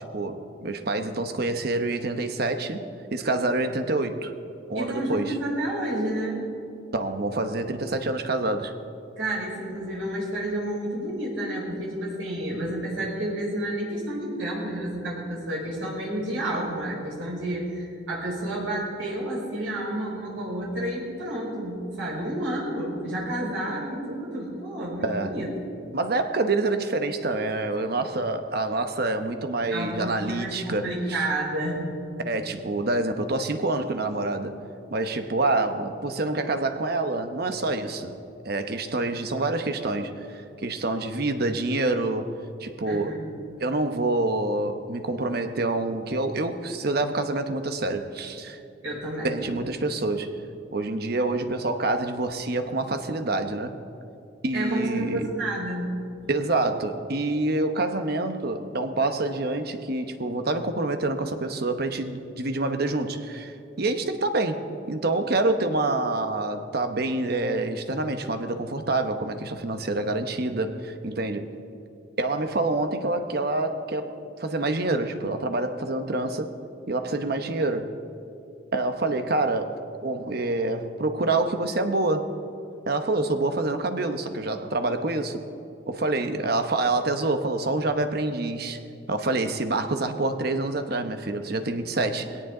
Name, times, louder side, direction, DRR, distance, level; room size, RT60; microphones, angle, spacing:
voice 1, 0.1-2.8 3.1-4.3 4.7-5.4 6.9-8.7 25.0-25.4 25.9-31.2 32.2-34.5 34.9-38.2 38.4-42.3 42.6-43.2 43.6-48.6 49.2-50.3 50.7-53.8 54.4-55.3 56.3-64.6 64.9-71.5 72.2-74.1 74.4-76.5 76.9-77.9 78.7-79.7 80.0-82.3 82.9-85.4 85.9-88.8 89.1-92.4, right 2 dB, 55° right, 7 dB, 0.9 m, -27 dB
voice 2, 4.7-6.4 9.2-25.5 29.7-31.8 42.8-43.2 48.8-49.3 54.5-55.9, right 1 dB, 80° right, -4 dB, 5.0 m, -30 dB
20.0 x 17.5 x 3.8 m, 2.7 s
head